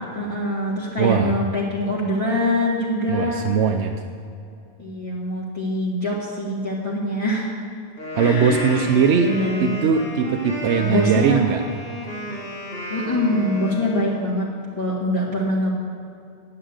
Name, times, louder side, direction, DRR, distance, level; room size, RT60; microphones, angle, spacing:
voice 1, 0.0-3.4 4.8-7.5 8.2-8.9 9.2-9.8 10.8-11.4 12.9-14.5 14.8-15.7, left 1 dB, 30° left, -7 dB, 2.2 m, -24 dB
voice 2, 1.0-1.4 3.1-3.9 8.1-9.3 9.6-11.6, right 6 dB, 80° right, 4 dB, 1.0 m, -20 dB
Wind instrument woodwind instrument, 8.0-14.2, equal, 60° left, 2.6 m, -32 dB
9.9 x 9.5 x 8.0 m, 2.5 s
omnidirectional pair, 1.1 m